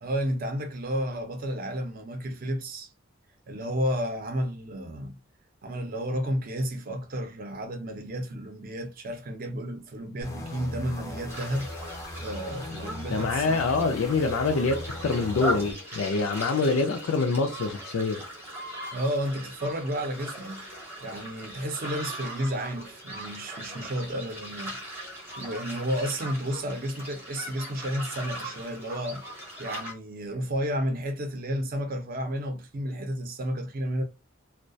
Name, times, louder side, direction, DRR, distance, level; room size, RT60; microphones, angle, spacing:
voice 1, 0.0-2.9 3.5-5.2 5.6-11.7 12.2-13.9 18.9-20.7 21.0-24.8 25.4-29.2 29.6-34.0, equal, 45° right, 0.5 m, -32 dB
sound 1, 10.2-15.7, left 1 dB, 15° left, 0.4 m, -39 dB
sound 2, 11.3-29.9, equal, 10° right, 0.7 m, -39 dB
voice 2, 13.1-18.2, left 4 dB, 80° left, 0.4 m, -25 dB
2.3 x 2.1 x 2.5 m
head